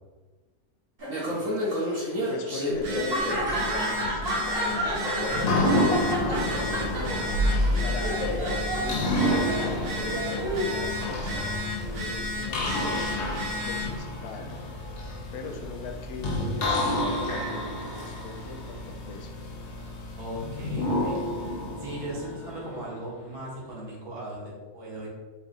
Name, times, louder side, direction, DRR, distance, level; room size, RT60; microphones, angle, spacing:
Laughter, 1.0-11.4, equal, 40° right, 1.3 m, -30 dB
voice 1, 1.3-7.3 7.8-11.2 11.8-12.9 13.6-14.6 15.3-19.6, left 3 dB, 75° left, 5 dB, 1.0 m, -40 dB
Telephone, 2.7-14.0, left 1 dB, 85° right, 1.3 m, -34 dB
sound 1, 5.2-23.1, left 1 dB, 55° left, 0.7 m, -29 dB
voice 2, 20.2-21.2 21.8-25.1, right 1 dB, 70° right, -5 dB, 1.7 m, -38 dB
4.5 x 2.3 x 3.6 m, 1.3 s
omnidirectional pair, 1.6 m